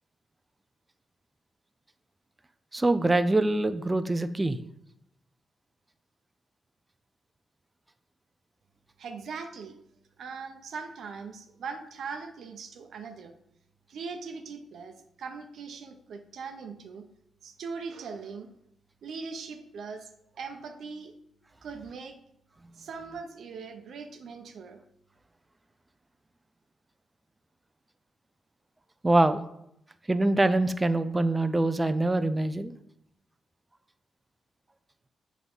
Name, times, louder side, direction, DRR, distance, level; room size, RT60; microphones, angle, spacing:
voice 1, 2.7-4.6 29.0-29.4 30.1-32.7, right 2 dB, 15° right, 11 dB, 0.4 m, -24 dB
voice 2, 9.0-9.8 10.2-13.3 13.9-17.0 17.4-18.5 19.0-21.1 21.6-22.2 22.7-24.8, right 5 dB, 70° right, 6 dB, 0.7 m, -40 dB
7.8 x 3.6 x 5.4 m, 0.77 s
cardioid pair, 125°, 0 cm